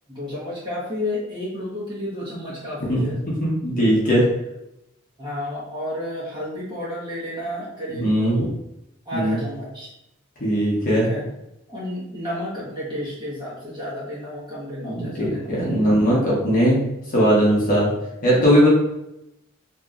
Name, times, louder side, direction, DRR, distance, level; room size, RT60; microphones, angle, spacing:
voice 1, 0.1-3.2 5.2-8.5 9.0-9.9 10.9-11.3 11.7-15.6, left 1 dB, 20° right, -8 dB, 1.2 m, -31 dB
voice 2, 3.4-4.2 8.0-8.4 9.1-9.4 10.4-11.1 14.8-16.8 17.1-17.9 18.2-18.7, equal, 40° left, -6 dB, 1.0 m, -19 dB
2.9 x 2.9 x 2.5 m, 0.86 s
head